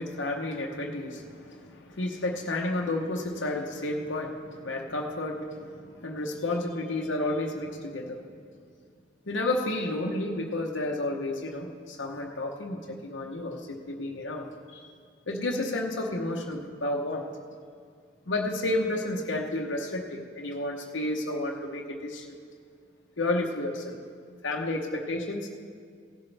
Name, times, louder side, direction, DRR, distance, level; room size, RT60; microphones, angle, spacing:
voice 1, 0.0-8.2 9.3-14.9 15.3-17.3 18.3-22.3 23.2-24.0 24.4-25.5, left 2 dB, 75° left, 0 dB, 0.9 m, -31 dB
17.0 x 11.0 x 3.4 m, 2.1 s
head